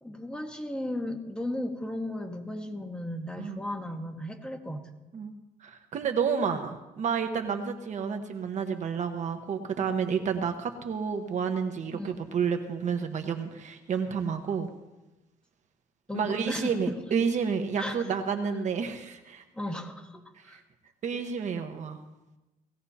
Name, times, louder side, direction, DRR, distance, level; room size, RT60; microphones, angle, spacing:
voice 1, 0.0-4.9 11.9-12.2 16.1-17.0 17.8-18.1 19.5-20.6, left 1 dB, 5° left, 3 dB, 1.6 m, -35 dB
voice 2, 5.6-14.7 16.1-19.4 20.4-20.6 21.0-22.0, right 6 dB, 55° right, 6 dB, 1.3 m, -30 dB
19.5 x 16.5 x 2.9 m, 1.0 s
cardioid pair, 120°, 15 cm